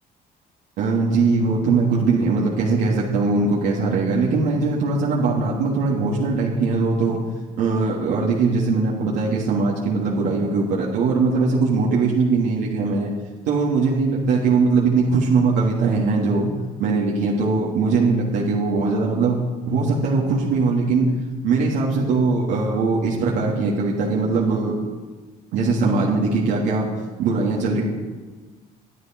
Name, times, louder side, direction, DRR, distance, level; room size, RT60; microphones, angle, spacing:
voice 1, 0.8-7.2 7.6-13.1 13.5-16.5 16.8-19.4 19.7-21.1 21.4-24.7 25.5-26.9 27.2-27.8, right 4 dB, 85° right, -5 dB, 3.0 m, -20 dB
23.0 x 12.5 x 4.7 m, 1.3 s
cardioid pair, 110°, 17 cm